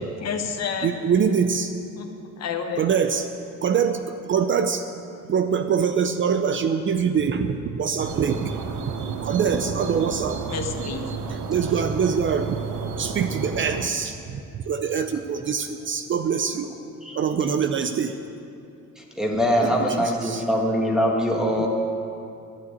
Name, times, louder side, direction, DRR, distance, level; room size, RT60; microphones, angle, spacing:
voice 1, 0.2-0.9 2.0-2.9 10.5-11.1, left 6 dB, 55° left, 4 dB, 1.1 m, -30 dB
voice 2, 0.8-1.7 2.8-3.3 3.6-4.9 5.3-8.5 9.0-10.4 11.3-12.6 13.0-14.4 14.7-16.7 17.1-18.1 19.6-19.9 20.2-20.4, right 6 dB, 40° right, 8 dB, 0.5 m, -24 dB
sound 1, 8.0-13.9, right 5 dB, 75° right, 0.9 m, -32 dB
voice 3, 19.0-21.7, equal, ahead, -1 dB, 1.5 m, -23 dB
12.0 x 6.9 x 9.7 m, 2.6 s
cardioid pair, 155°, 30 cm